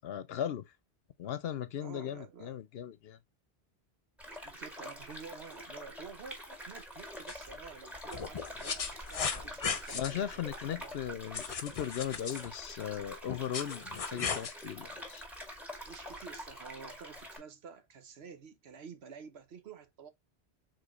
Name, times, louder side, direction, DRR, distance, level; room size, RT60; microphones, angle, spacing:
voice 1, 0.0-0.6 1.2-3.2 9.9-15.2, left 10 dB, 70° left, 0.9 m, -37 dB
voice 2, 1.8-2.6 4.4-10.4 10.8-11.3 13.9-14.3 15.9-20.1, right 6 dB, 75° right, 1.1 m, -50 dB
sound 1, 4.2-17.4, equal, ahead, 1.8 m, -46 dB
sound 2, 7.3-7.4 8.1-10.1 11.3-12.5 13.3-14.5, left 6 dB, 45° left, 0.5 m, -36 dB
5.0 x 3.9 x 2.4 m
omnidirectional pair, 1.1 m